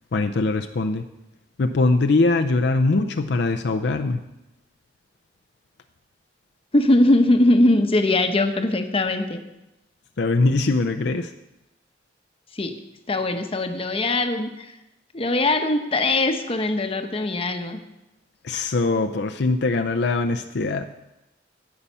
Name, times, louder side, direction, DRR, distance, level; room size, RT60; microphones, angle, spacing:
voice 1, 0.1-1.0 1.6-4.2 10.2-11.3 18.4-20.8, left 3 dB, 65° left, 5 dB, 0.5 m, -22 dB
voice 2, 6.7-9.4 12.5-12.8 13.1-14.8 15.1-17.8, left 2 dB, 30° left, 6 dB, 0.9 m, -21 dB
17.0 x 5.7 x 5.6 m, 0.96 s
head